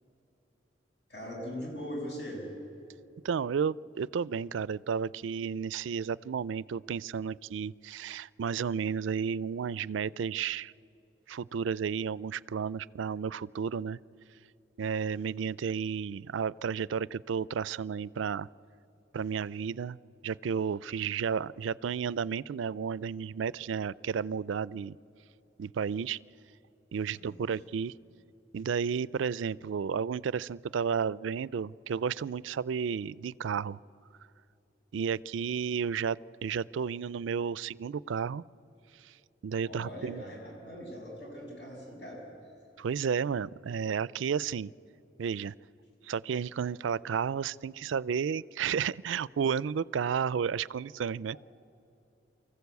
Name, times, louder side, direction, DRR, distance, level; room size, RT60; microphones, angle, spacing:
voice 1, 1.1-2.4 27.1-27.6 39.6-42.2 51.3-51.4, equal, 60° left, -2 dB, 6.7 m, -41 dB
voice 2, 3.2-10.7 11.3-14.0 14.8-18.5 19.1-20.0 20.2-25.0 25.6-26.2 26.9-27.9 28.5-33.8 34.9-38.4 39.4-40.2 42.8-44.7 45.2-45.5 46.0-51.4, right 6 dB, 90° right, 21 dB, 0.4 m, -32 dB
24.5 x 15.0 x 8.3 m, 2.9 s
head